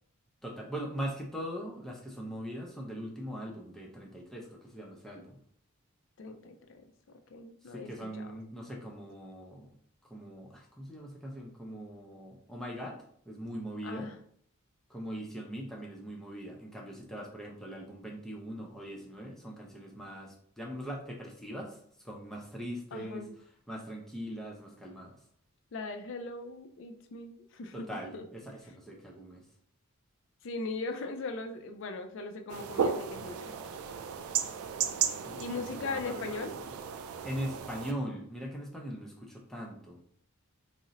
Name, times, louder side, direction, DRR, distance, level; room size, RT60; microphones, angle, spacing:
voice 1, 0.4-5.4 7.6-9.7 10.1-13.0 13.3-14.1 14.9-21.8 22.0-23.2 23.7-25.2 27.7-29.4 35.1-36.5 37.2-40.0, equal, ahead, -1 dB, 0.5 m, -41 dB
voice 2, 6.2-8.3 13.8-14.2 22.9-23.3 25.7-27.9 28.1-28.2 30.4-33.5 35.4-36.6, left 3 dB, 60° left, 6 dB, 0.4 m, -39 dB
sound 1, 32.5-37.9, right 7 dB, 85° right, 0.3 m, -35 dB
2.5 x 2.0 x 3.9 m, 0.63 s
head